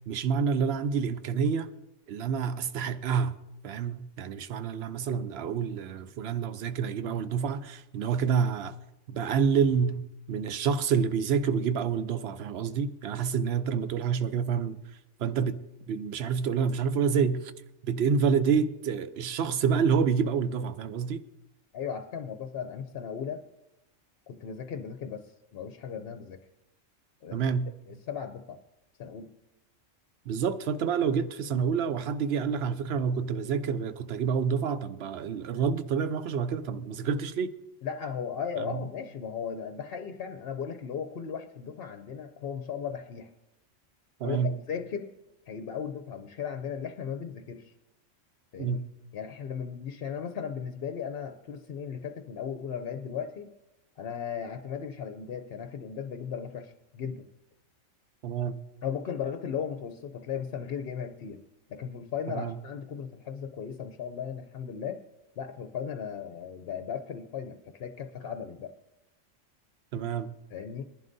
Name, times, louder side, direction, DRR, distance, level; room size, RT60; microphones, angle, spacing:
voice 1, 0.1-1.7 2.1-3.4 3.6-8.8 9.1-14.8 15.2-15.6 15.9-17.5 17.8-21.2 27.3-27.7 30.3-37.5 38.6-38.8 44.2-44.5 48.6-48.8 58.2-58.6 62.3-62.6 69.9-70.3, right 6 dB, 60° right, 0.8 m, -28 dB
voice 2, 21.7-23.4 24.3-26.4 27.2-27.4 27.9-28.6 29.0-29.3 37.8-43.3 44.2-45.1 45.5-47.7 48.5-48.8 49.1-53.5 54.0-57.3 58.8-61.4 61.7-65.0 65.4-68.8 70.5-70.8, left 7 dB, 55° left, 0.8 m, -36 dB
22.0 x 11.0 x 2.6 m
omnidirectional pair, 1.3 m